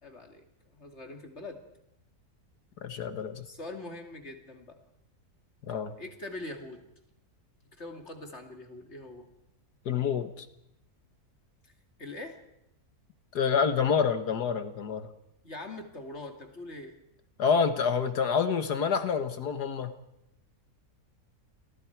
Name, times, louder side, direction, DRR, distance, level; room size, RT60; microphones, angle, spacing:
voice 1, 0.0-1.6 3.5-4.8 6.0-6.9 7.8-9.3 12.0-12.4 15.4-17.0, left 2 dB, 45° left, 4 dB, 2.9 m, -43 dB
voice 2, 2.8-3.5 5.6-5.9 9.9-10.5 13.3-15.1 17.4-19.9, left 6 dB, 85° left, 9 dB, 2.0 m, -27 dB
29.5 x 22.0 x 4.7 m, 0.84 s
omnidirectional pair, 1.7 m